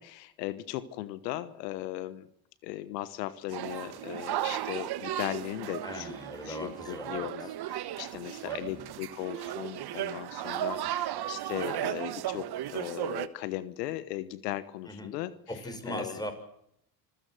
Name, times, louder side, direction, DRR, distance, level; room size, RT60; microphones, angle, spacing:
voice 1, 0.0-2.3 2.6-6.1 6.4-15.3 15.9-16.2, left 15 dB, 90° left, 15 dB, 1.3 m, -37 dB
sound 1, 3.5-13.3, right 12 dB, 55° right, 1.5 m, -35 dB
voice 2, 5.8-7.5 8.4-8.8 14.9-15.1 15.5-16.3, equal, 10° left, 8 dB, 6.2 m, -39 dB
26.5 x 15.5 x 7.8 m, 0.75 s
supercardioid pair, 80°, 47 cm